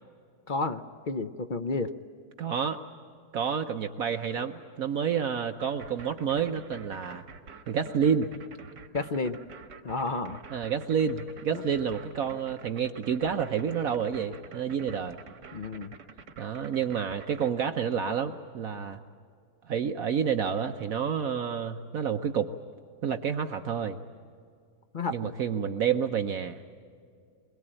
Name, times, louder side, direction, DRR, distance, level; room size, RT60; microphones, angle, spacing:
voice 1, 0.5-1.9 8.9-9.4 9.8-10.4 11.5-11.6 15.5-15.9 24.9-25.3, left 3 dB, 55° left, 8 dB, 0.5 m, -31 dB
voice 2, 2.4-2.8 3.3-7.2 7.7-8.3 10.5-15.2 16.4-19.0 19.7-22.5 23.0-24.0 25.1-26.6, right 7 dB, 60° right, 7 dB, 1.1 m, -29 dB
sound 1, 5.6-17.5, right 5 dB, 75° right, 2.0 m, -47 dB
22.5 x 22.0 x 8.9 m, 2.3 s
omnidirectional pair, 1.8 m